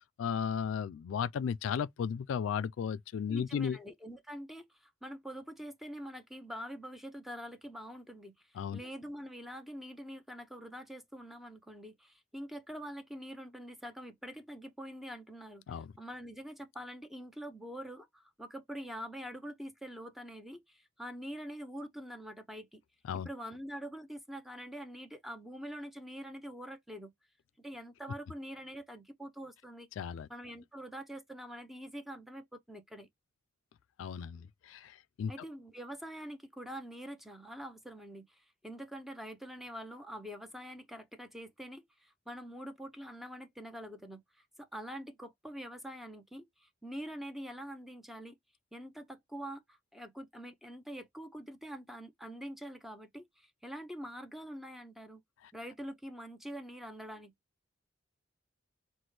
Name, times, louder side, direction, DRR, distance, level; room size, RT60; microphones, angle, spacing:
voice 1, 0.2-3.8 8.6-8.8 15.7-15.9 23.1-23.3 30.0-30.3 34.0-35.3, left 7 dB, 90° left, 0.3 m, -35 dB
voice 2, 3.3-22.8 23.1-27.1 27.6-29.9 30.3-33.1 35.3-48.4 48.7-55.2 55.5-57.3, equal, ahead, 0.5 m, -45 dB
5.9 x 2.1 x 3.2 m
head